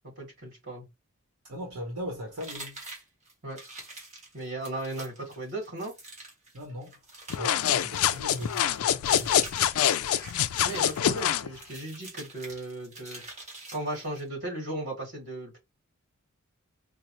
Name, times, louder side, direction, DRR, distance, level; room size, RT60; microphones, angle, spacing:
voice 1, 0.0-0.9 3.4-3.6 4.3-5.9 10.6-13.2 13.7-15.6, right 1 dB, 55° right, 2.0 m, -36 dB
voice 2, 1.4-2.8 6.5-7.0 7.4-9.5, equal, 75° right, 1.1 m, -38 dB
sound 1, 2.4-14.3, right 2 dB, 30° right, 1.4 m, -46 dB
sound 2, 7.3-11.5, left 10 dB, 75° left, 0.3 m, -25 dB
4.7 x 2.0 x 3.1 m
head